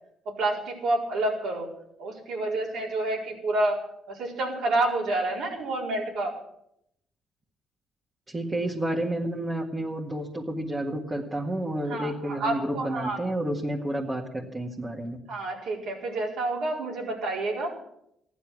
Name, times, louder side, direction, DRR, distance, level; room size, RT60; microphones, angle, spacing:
voice 1, 0.2-1.7 2.0-3.8 4.1-6.3 11.9-13.2 15.3-17.8, right 2 dB, 80° right, -2 dB, 4.6 m, -29 dB
voice 2, 8.3-15.2, right 1 dB, 20° right, -1 dB, 1.8 m, -30 dB
15.5 x 11.0 x 6.1 m, 0.75 s
cardioid pair, 90°, 0 cm